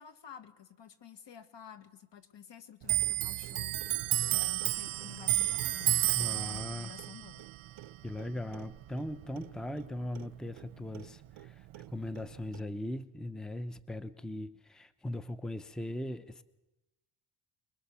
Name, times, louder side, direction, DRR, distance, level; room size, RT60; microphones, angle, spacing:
voice 1, 0.0-3.8 4.3-7.5, left 9 dB, 60° left, 10 dB, 1.9 m, -51 dB
Clock, 2.8-9.9 10.2-11.5 11.7-12.6, right 16 dB, 75° right, 0.7 m, -32 dB
voice 2, 6.1-6.9 8.0-16.4, left 1 dB, ahead, 13 dB, 0.8 m, -39 dB
24.5 x 22.0 x 7.0 m, 0.99 s
cardioid pair, 85°, 48 cm